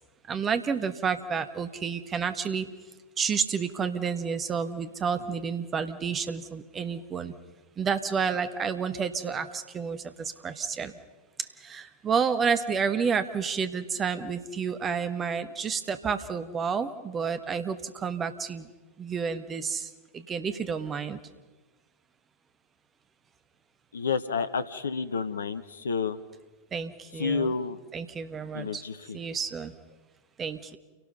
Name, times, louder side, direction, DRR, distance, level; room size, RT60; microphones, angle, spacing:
voice 1, 0.3-2.7 3.2-7.3 7.8-10.9 11.6-18.7 19.0-21.2 26.7-27.5 27.9-28.8 29.1-29.7 30.4-30.8, right 6 dB, 25° right, 10 dB, 1.4 m, -30 dB
voice 2, 23.9-26.2 27.2-27.8 28.5-29.2, left 5 dB, 70° left, 12 dB, 0.9 m, -30 dB
29.0 x 18.0 x 5.5 m, 1.2 s
figure-of-eight pair, 90°, 0 cm